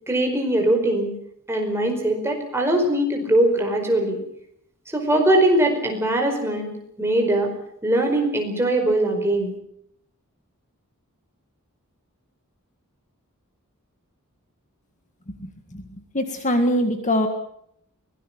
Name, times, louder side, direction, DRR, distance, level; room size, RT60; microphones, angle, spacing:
voice 1, 0.1-1.1 1.5-4.2 4.9-6.7 7.0-7.5 7.8-9.5, right 1 dB, 10° right, 3 dB, 4.9 m, -21 dB
voice 2, 16.1-17.3, equal, 35° left, 6 dB, 1.9 m, -22 dB
23.5 x 18.5 x 7.3 m, 0.71 s
head